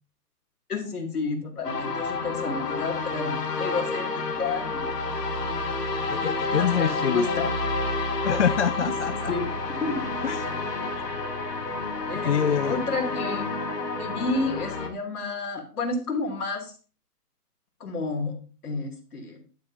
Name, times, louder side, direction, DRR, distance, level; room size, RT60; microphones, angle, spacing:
voice 1, 0.7-4.8 6.5-7.5 9.3-10.1 11.1-11.3 12.1-13.5 14.0-16.7 17.8-18.3 18.6-19.4, left 3 dB, 70° left, 3 dB, 3.2 m, -31 dB
sound 1, 1.6-14.9, left 3 dB, 85° left, 2.5 m, -29 dB
voice 2, 6.1-7.3 8.2-9.3 10.2-10.5 12.3-12.8, left 8 dB, 50° left, 11 dB, 0.5 m, -26 dB
11.5 x 7.8 x 2.8 m, 0.37 s
hypercardioid pair, 160°, 47 cm